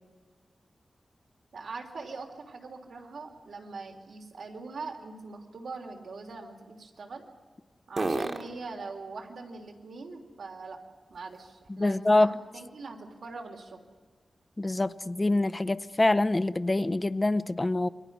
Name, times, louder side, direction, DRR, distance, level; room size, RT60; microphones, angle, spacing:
voice 1, 1.5-7.2 7.9-10.8 11.1-13.8, right 3 dB, 85° right, 2 dB, 3.4 m, -42 dB
sound 1, 8.8-12.0 12.5-16.3, right 2 dB, 35° right, 1.5 m, -43 dB
voice 2, 11.8-12.3 14.6-17.9, left 2 dB, 20° left, 16 dB, 0.6 m, -25 dB
28.0 x 23.5 x 6.2 m, 1.5 s
wide cardioid pair, 160°, 0 cm